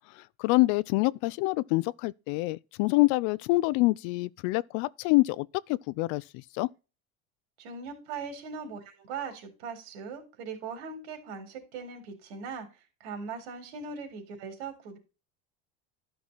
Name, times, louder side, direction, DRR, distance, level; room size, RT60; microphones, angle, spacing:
voice 1, 0.4-6.7, left 22 dB, 65° left, 0.5 m, -26 dB
voice 2, 7.6-12.7 13.0-15.0, right 5 dB, 85° right, 4.3 m, -40 dB
12.5 x 6.1 x 4.0 m
cardioid pair, 150°, 31 cm